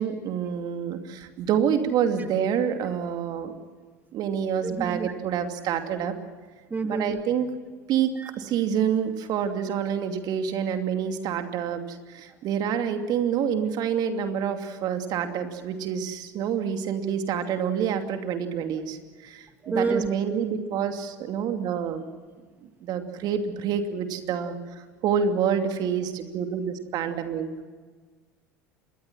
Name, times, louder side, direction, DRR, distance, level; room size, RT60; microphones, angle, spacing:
voice 1, 0.0-3.5 4.1-6.1 6.8-7.5 7.9-19.0 19.2-22.0 22.8-24.6 25.0-27.5, right 8 dB, 50° right, 6 dB, 2.7 m, -27 dB
voice 2, 4.6-5.1 6.7-7.2 8.2-8.3 19.6-20.1, right 4 dB, 20° right, 7 dB, 1.7 m, -28 dB
26.5 x 22.5 x 6.1 m, 1.5 s
hypercardioid pair, 75°, 9 cm